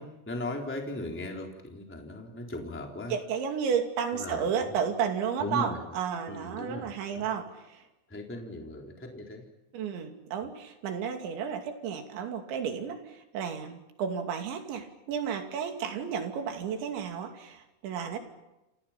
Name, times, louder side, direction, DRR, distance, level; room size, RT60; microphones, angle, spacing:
voice 1, 0.0-3.1 4.1-4.8 5.4-5.8 6.3-7.3 8.1-9.4, left 1 dB, 5° left, 1 dB, 2.8 m, -38 dB
voice 2, 3.1-7.8 9.7-18.2, right 7 dB, 65° right, 5 dB, 4.8 m, -32 dB
28.5 x 28.5 x 5.9 m, 0.97 s
omnidirectional pair, 5.7 m